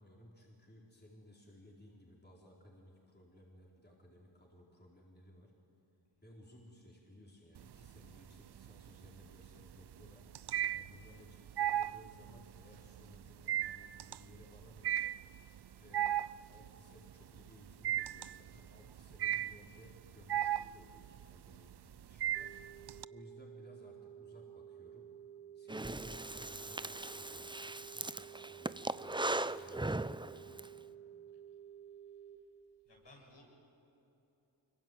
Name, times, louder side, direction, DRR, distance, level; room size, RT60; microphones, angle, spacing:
voice 1, 0.0-5.5 6.2-10.3 10.7-15.2 15.7-22.5 23.1-25.1 25.5-30.7, left 1 dB, 20° left, -2 dB, 4.4 m, -59 dB
sound 1, 7.6-8.2 8.6-23.0, right 12 dB, 60° right, 0.5 m, -36 dB
sound 2, 22.3-32.4, right 9 dB, 40° left, 4.9 m, -53 dB
Breathing, 25.7-30.7, right 2 dB, 10° right, 0.6 m, -39 dB
voice 2, 32.9-33.4, left 2 dB, 65° left, -2 dB, 7.9 m, -59 dB
25.0 x 22.5 x 9.3 m, 3.0 s
wide cardioid pair, 55°, 47 cm